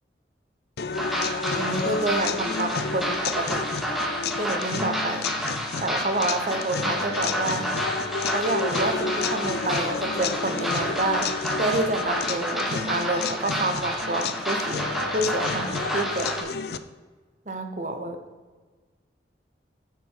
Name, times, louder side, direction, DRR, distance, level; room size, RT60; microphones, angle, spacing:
sound 1, 0.8-16.8, left 5 dB, 60° left, 0.5 m, -31 dB
sound 2, 0.9-16.4, equal, ahead, 1.4 m, -30 dB
voice 1, 1.5-3.6 4.4-5.2 5.8-7.7 8.2-14.9 15.1-16.5 17.5-18.2, right 2 dB, 45° right, 6 dB, 1.1 m, -28 dB
9.4 x 7.0 x 4.7 m, 1.4 s
head